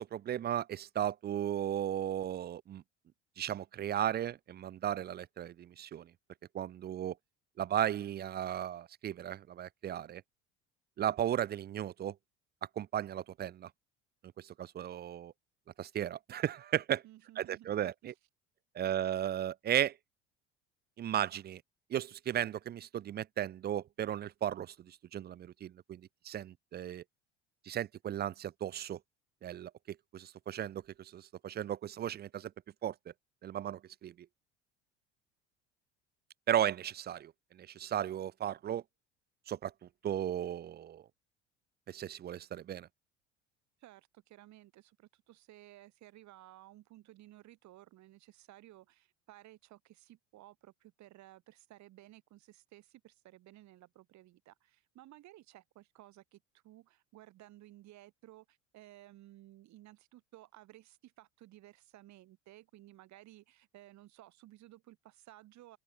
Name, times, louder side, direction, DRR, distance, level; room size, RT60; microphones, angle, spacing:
voice 1, 0.0-2.8 3.4-6.1 6.5-7.1 7.6-10.2 11.0-12.1 12.8-13.7 14.4-15.3 15.8-17.0 17.4-18.1 18.7-20.0 21.0-21.6 21.9-27.0 27.7-29.0 29.4-32.5 32.8-32.9 33.4-34.1 36.5-38.8 39.5-39.7 40.0-41.0 41.9-42.9, right 10 dB, 30° right, 0.5 m, -35 dB
voice 2, 17.0-18.1 18.8-19.0 43.8-65.8, right 15 dB, 50° right, 2.6 m, -57 dB
open air
figure-of-eight pair, 65°, 35 cm